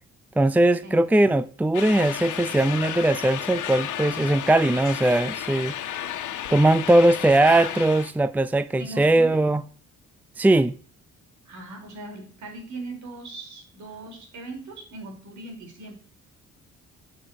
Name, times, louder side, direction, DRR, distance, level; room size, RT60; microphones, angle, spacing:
voice 1, 0.4-5.7 6.5-9.6 10.4-10.7, right 1 dB, 5° right, 0.6 m, -20 dB
sound 1, 1.7-8.1, left 10 dB, 80° left, 1.6 m, -32 dB
voice 2, 8.8-9.5 11.4-15.9, right 2 dB, 70° right, 5.1 m, -39 dB
11.0 x 6.5 x 8.0 m
cardioid pair, 90°, 30 cm